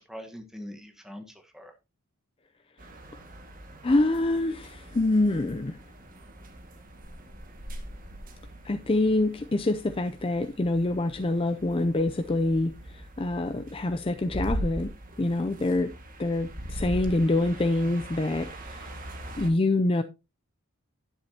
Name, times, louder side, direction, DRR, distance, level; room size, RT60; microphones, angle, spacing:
voice 1, 0.0-1.7 17.3-17.6, equal, ahead, 1.3 m, -43 dB
sound 1, 2.8-19.5, right 1 dB, 40° right, 1.9 m, -41 dB
voice 2, 3.8-5.8 8.6-14.9 15.2-15.9 16.2-18.9 19.4-20.0, left 2 dB, 25° left, 0.5 m, -26 dB
11.0 x 9.7 x 2.8 m
head